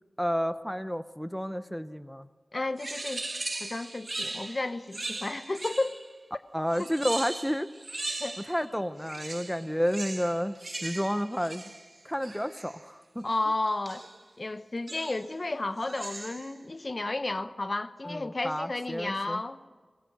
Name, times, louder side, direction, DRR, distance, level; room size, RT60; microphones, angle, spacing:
voice 1, 0.2-2.3 6.5-7.7 8.5-11.7 12.0-13.2 18.1-19.4, equal, 5° left, 0.7 m, -31 dB
voice 2, 2.5-3.2 3.6-6.0 6.8-6.9 8.2-8.5 13.2-14.0 14.4-19.6, left 2 dB, 40° left, 0.9 m, -32 dB
sound 1, 2.8-6.1 6.7-8.7 9.0-12.8 13.9-14.2 14.9-15.3 15.8-16.6, right 2 dB, 40° right, 1.9 m, -39 dB
24.5 x 21.0 x 6.8 m
wide cardioid pair, 90°, 0 cm